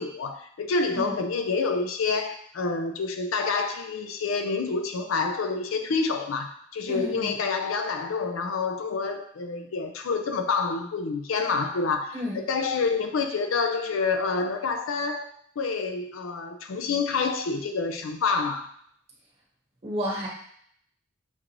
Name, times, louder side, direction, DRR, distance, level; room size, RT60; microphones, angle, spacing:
voice 1, 0.0-15.3 15.6-18.7, left 4 dB, 75° left, 6 dB, 0.4 m, -28 dB
voice 2, 6.9-7.3 12.1-12.4 19.8-20.3, equal, 30° right, -4 dB, 1.3 m, -31 dB
6.1 x 2.5 x 3.0 m, 0.65 s
head